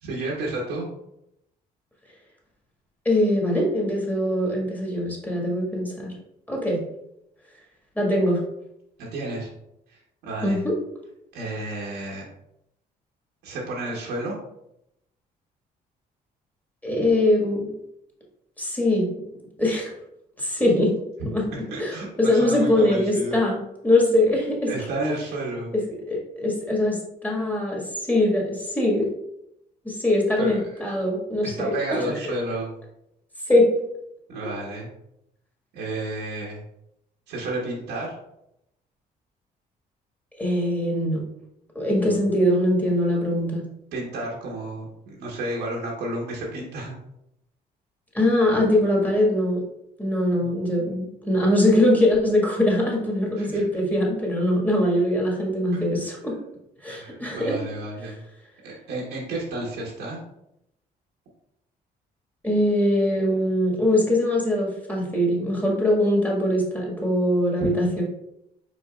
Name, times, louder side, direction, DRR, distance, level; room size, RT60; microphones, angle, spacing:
voice 1, 0.0-0.9 9.0-9.5 9.9-10.6 11.3-12.2 13.4-14.4 21.5-23.4 24.7-25.7 30.4-30.8 31.4-32.7 34.3-34.9 35.7-36.6 37.3-38.2 42.0-42.1 43.9-46.9 50.3-50.5 53.4-53.6 55.7-55.8 56.9-58.2 58.6-60.2 67.6-67.7, right 2 dB, 90° right, -3 dB, 1.2 m, -31 dB
voice 2, 3.0-6.1 6.5-6.8 7.9-8.4 10.4-10.8 16.8-17.7 18.6-19.1 19.6-19.9 20.4-20.9 21.3-21.4 21.8-24.7 25.7-27.8 28.1-29.1 29.8-32.3 33.5-33.7 40.4-41.2 41.7-43.6 48.1-49.6 50.0-56.3 56.8-57.6 62.4-68.0, left 1 dB, 10° left, -2 dB, 1.7 m, -22 dB
5.2 x 4.2 x 2.4 m, 0.80 s
cardioid pair, 90°, 17 cm